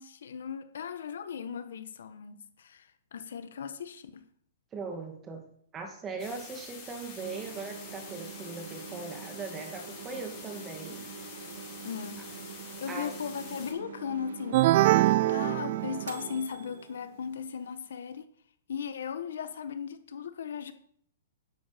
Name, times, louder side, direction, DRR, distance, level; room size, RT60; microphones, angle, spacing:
voice 1, 0.0-4.2 11.8-12.2 12.8-18.3 18.7-20.7, left 7 dB, 75° left, 1.6 m, -37 dB
voice 2, 4.7-5.5 5.7-11.0 12.9-13.1, right 4 dB, 15° right, 2.5 m, -39 dB
sound 1, 6.2-13.7, left 5 dB, 25° left, 6.2 m, -47 dB
sound 2, 7.2-16.9, right 6 dB, 85° right, 2.5 m, -45 dB
sound 3, 14.5-16.4, right 16 dB, 45° right, 0.4 m, -23 dB
12.5 x 11.0 x 5.4 m
hypercardioid pair, 155°, 0 cm